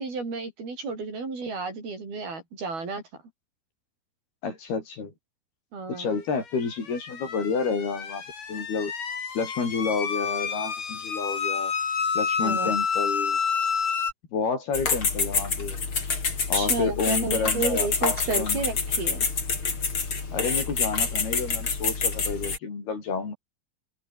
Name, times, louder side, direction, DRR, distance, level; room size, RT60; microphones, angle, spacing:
voice 1, 0.0-3.0 5.7-6.1 12.4-12.7 16.5-19.3, right 4 dB, 75° right, 10.0 m, -32 dB
voice 2, 4.4-5.1 5.9-8.2 8.5-8.9 9.3-11.7 12.1-13.4 14.3-15.8 16.5-18.6 20.3-23.3, left 5 dB, 80° left, 8.4 m, -30 dB
sound 1, 6.5-14.1, left 6 dB, 60° left, 5.5 m, -29 dB
sound 2, 14.7-22.6, left 4 dB, 35° left, 4.4 m, -27 dB
open air
omnidirectional pair, 4.4 m